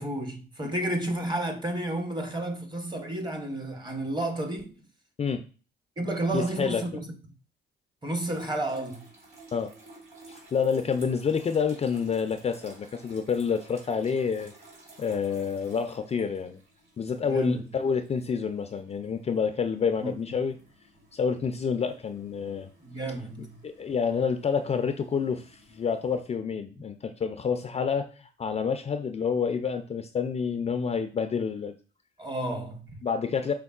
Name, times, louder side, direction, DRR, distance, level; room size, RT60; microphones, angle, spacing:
voice 1, 0.0-4.7 6.0-7.0 8.0-9.1 17.2-17.6 20.0-20.1 22.8-23.6 32.2-33.0, right 1 dB, 20° right, 0.9 m, -31 dB
voice 2, 6.3-6.8 9.5-9.7 10.3-14.5 15.0-16.6 17.0-20.5 21.1-22.7 23.6-31.7 33.0-33.5, left 6 dB, 30° left, 0.3 m, -28 dB
sound 1, 8.3-26.2, right 2 dB, 55° right, 2.3 m, -54 dB
5.2 x 3.5 x 2.3 m
cardioid pair, 90°, 20 cm